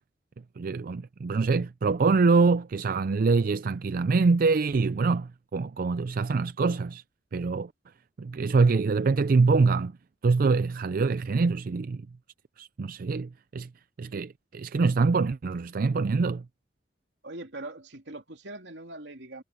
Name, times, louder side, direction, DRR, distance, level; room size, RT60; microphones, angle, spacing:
voice 1, 0.6-7.0 7.3-7.7 8.2-9.9 10.2-12.0 12.6-13.7 14.0-16.4, right 4 dB, 50° right, 0.4 m, -24 dB
voice 2, 17.2-19.4, right 2 dB, 80° right, 3.1 m, -41 dB
head